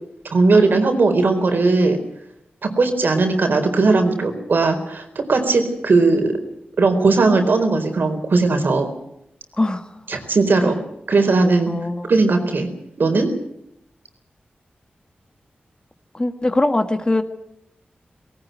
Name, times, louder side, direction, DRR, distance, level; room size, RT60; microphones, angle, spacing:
voice 1, 0.2-2.0 2.6-6.3 6.8-8.9 10.1-10.8 11.1-11.7 12.1-12.7 13.0-13.3, right 3 dB, 75° right, 6 dB, 4.3 m, -18 dB
voice 2, 9.6-9.9 10.6-10.8 11.7-12.1 16.1-17.2, left 2 dB, 25° left, 8 dB, 1.9 m, -21 dB
19.0 x 18.5 x 9.4 m, 0.79 s
wide cardioid pair, 75°, 3 cm